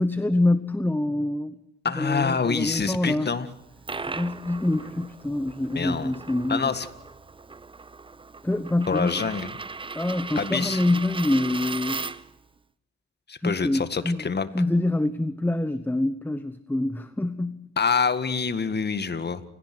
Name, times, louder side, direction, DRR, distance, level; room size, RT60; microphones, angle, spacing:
voice 1, 0.0-1.5 1.9-3.3 4.1-6.7 8.4-9.2 9.9-12.0 13.4-17.7, left 1 dB, 5° left, 13 dB, 1.0 m, -25 dB
voice 2, 1.8-3.5 5.7-6.1 6.5-6.9 8.9-9.5 10.4-10.8 13.3-14.5 17.8-19.4, left 5 dB, 35° left, 12 dB, 1.9 m, -26 dB
Coin (dropping), 3.5-12.4, right 4 dB, 15° right, 0.8 m, -37 dB
29.0 x 18.0 x 6.1 m, 0.86 s
cardioid pair, 90°, 30 cm